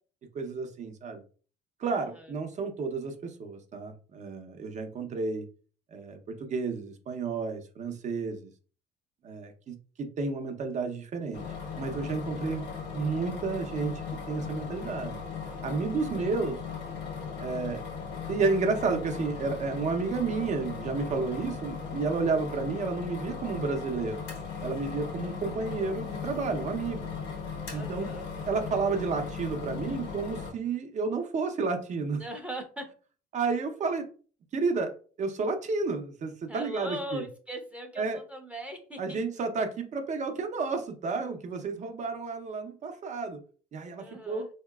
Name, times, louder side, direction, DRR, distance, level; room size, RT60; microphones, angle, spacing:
voice 1, 0.3-1.2 1.8-5.4 5.9-8.5 9.2-11.4 11.8-13.9 14.3-15.2 15.6-16.6 17.4-17.8 18.3-24.2 24.6-27.1 27.7-28.1 28.5-32.2 33.3-34.1 34.5-34.9 35.2-37.2 38.0-38.2 39.0-43.4 43.7-44.5, right 4 dB, 45° right, 6 dB, 0.6 m, -31 dB
voice 2, 1.8-2.3 16.2-16.3 27.7-28.3 32.2-32.8 36.5-39.2 44.0-44.5, equal, 5° right, 4 dB, 0.6 m, -40 dB
sound 1, 11.3-30.5, left 5 dB, 90° left, 1.2 m, -38 dB
3.9 x 2.8 x 2.3 m, 0.40 s
cardioid pair, 110°, 17 cm